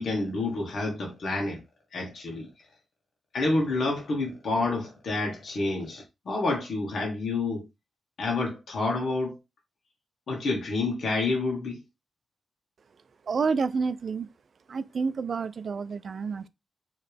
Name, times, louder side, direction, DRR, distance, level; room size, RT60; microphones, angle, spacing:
voice 1, 0.0-1.6 1.9-2.5 3.3-7.7 8.2-9.4 10.3-11.8, left 3 dB, 65° left, 1.5 m, -28 dB
voice 2, 13.3-14.3 14.7-16.5, right 5 dB, 55° right, 0.4 m, -29 dB
4.7 x 3.2 x 3.4 m
cardioid pair, 95°, 0 cm